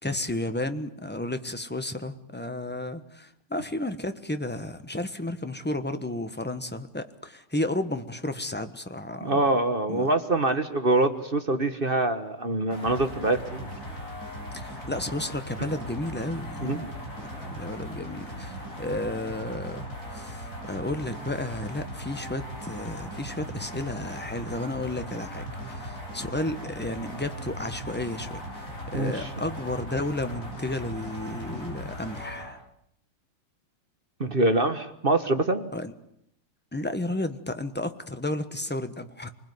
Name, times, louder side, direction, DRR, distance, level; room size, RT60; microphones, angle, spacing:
voice 1, 0.0-9.4 9.9-10.1 14.5-16.9 17.2-19.9 20.1-28.4 28.9-32.6 35.7-35.9 36.7-39.3, left 1 dB, 5° left, 9 dB, 0.8 m, -32 dB
voice 2, 9.2-13.7 16.6-16.9 28.9-29.3 34.2-35.7, right 2 dB, 30° right, 8 dB, 1.2 m, -25 dB
sound 1, 12.7-32.5, equal, 35° left, 8.2 m, -38 dB
26.5 x 20.5 x 9.5 m, 0.74 s
omnidirectional pair, 2.3 m